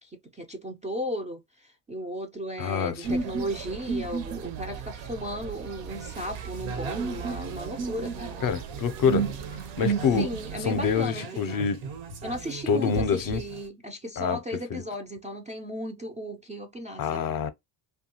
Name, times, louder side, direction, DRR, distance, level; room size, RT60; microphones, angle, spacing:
voice 1, 0.0-8.4 9.9-11.6 12.2-17.4, equal, 15° right, 0.3 m, -35 dB
voice 2, 2.6-3.2 8.4-9.3 9.8-10.3 10.6-11.8 12.7-13.4 14.2-14.4 14.7-14.8 17.0-17.5, left 7 dB, 45° left, 0.6 m, -26 dB
sound 1, 3.0-11.1, right 6 dB, 60° right, 0.7 m, -33 dB
sound 2, 5.9-13.7, right 5 dB, 90° right, 1.1 m, -39 dB
2.6 x 2.3 x 2.8 m
cardioid pair, 105°, 48 cm